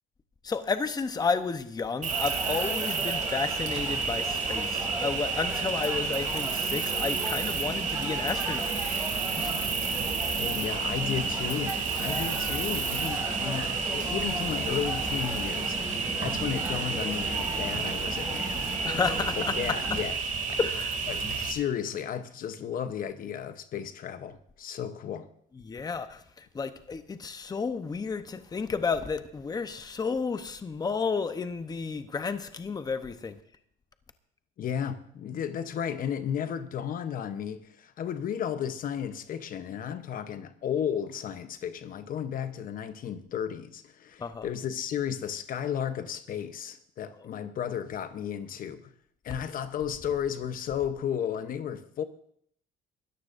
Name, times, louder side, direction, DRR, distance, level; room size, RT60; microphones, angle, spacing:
voice 1, 0.4-8.7 9.4-9.7 18.8-19.5 20.6-20.9 25.6-33.4 44.2-44.5, left 5 dB, 25° left, 0.8 m, -32 dB
Cricket, 2.0-21.5, right 5 dB, 50° right, 2.5 m, -31 dB
sound 1, 2.1-20.0, right 1 dB, 10° right, 6.9 m, -37 dB
voice 2, 10.4-18.7 19.4-20.2 20.5-20.6 21.1-25.3 34.6-48.9 49.2-52.0, left 9 dB, 55° left, 0.9 m, -34 dB
23.0 x 13.5 x 2.6 m
cardioid pair, 110°, 17 cm